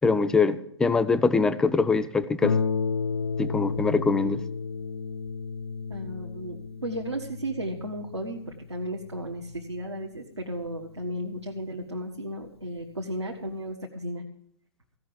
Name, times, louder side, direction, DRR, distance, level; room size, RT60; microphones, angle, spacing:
voice 1, 0.0-2.6 3.4-4.4, left 4 dB, 5° left, 12 dB, 0.4 m, -23 dB
Harp, 2.4-11.6 12.4-12.5 13.0-13.1, left 5 dB, 65° left, 0.6 m, -33 dB
voice 2, 5.9-14.2, right 1 dB, 85° right, 0 dB, 1.4 m, -34 dB
15.5 x 5.9 x 8.4 m, 0.70 s
figure-of-eight pair, 120°, 14 cm